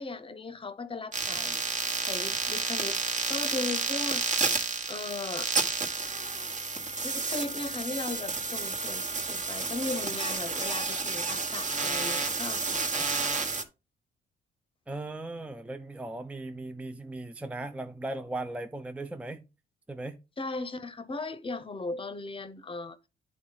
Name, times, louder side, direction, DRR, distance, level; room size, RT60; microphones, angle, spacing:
voice 1, 0.0-1.6 2.1-3.0 3.3-5.5 7.0-13.2 20.4-23.0, left 3 dB, 25° left, 0.8 m, -37 dB
sound 1, 1.1-13.6, right 4 dB, 40° right, 1.3 m, -31 dB
voice 2, 14.9-19.4 19.9-20.2, right 2 dB, 5° right, 0.5 m, -37 dB
10.5 x 3.7 x 3.9 m
cardioid pair, 90°, 20 cm